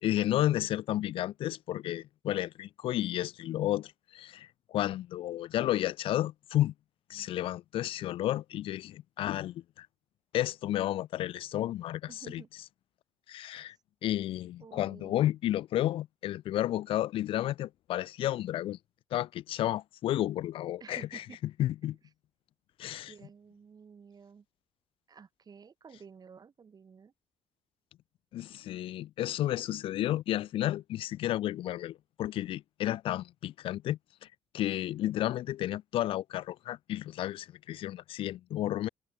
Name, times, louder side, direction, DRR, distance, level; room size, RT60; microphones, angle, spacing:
voice 1, 0.0-6.7 7.1-9.9 10.3-12.4 13.3-13.7 14.0-18.8 19.1-21.2 21.6-22.0 22.8-23.1 28.3-34.0 34.5-38.9, left 13 dB, 75° left, 1.2 m, -32 dB
voice 2, 12.1-12.5 14.6-15.2 20.8-21.4 21.8-21.9 23.1-24.4 25.1-27.1, right 6 dB, 45° right, 3.5 m, -52 dB
supercardioid pair, 65°, 9 cm